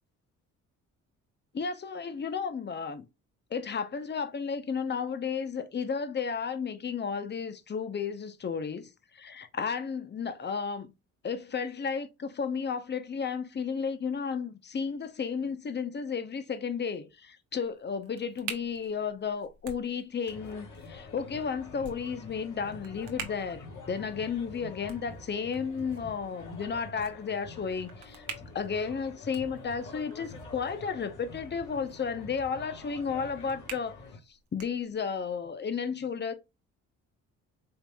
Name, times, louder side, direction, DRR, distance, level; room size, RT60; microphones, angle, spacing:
voice 1, 1.5-3.1 3.5-10.9 11.2-28.3 28.5-34.0 34.3-36.3, left 6 dB, 30° left, 0.7 m, -33 dB
sound 1, 17.5-35.3, right 7 dB, 75° right, 1.0 m, -49 dB
sound 2, 20.3-34.2, left 3 dB, 55° left, 2.1 m, -47 dB
4.4 x 3.3 x 2.3 m
supercardioid pair, 55°, 36 cm